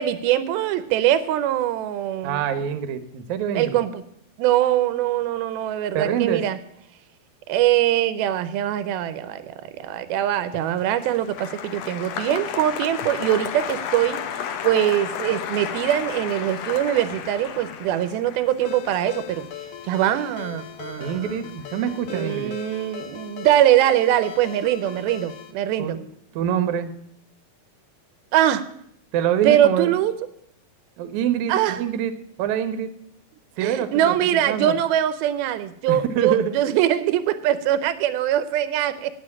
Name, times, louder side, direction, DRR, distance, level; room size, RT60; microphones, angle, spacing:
voice 1, 0.0-2.5 3.5-4.0 4.4-6.6 7.5-14.2 14.6-19.5 19.8-21.3 22.1-26.0 28.3-28.6 29.4-30.1 31.5-31.8 33.6-39.1, right 12 dB, 85° right, 13 dB, 2.5 m, -22 dB
voice 2, 2.2-3.8 6.0-6.4 21.0-22.5 25.8-26.1 26.3-26.9 29.1-29.9 31.0-32.1 32.4-32.9 33.6-34.7 35.9-36.5, right 9 dB, 70° right, 9 dB, 2.0 m, -25 dB
Applause, 10.4-20.8 21.0-21.7, left 8 dB, 85° left, 1.4 m, -33 dB
Ringtone, 18.7-25.5, left 10 dB, 65° left, 2.2 m, -39 dB
9.3 x 8.4 x 9.7 m, 0.72 s
omnidirectional pair, 4.3 m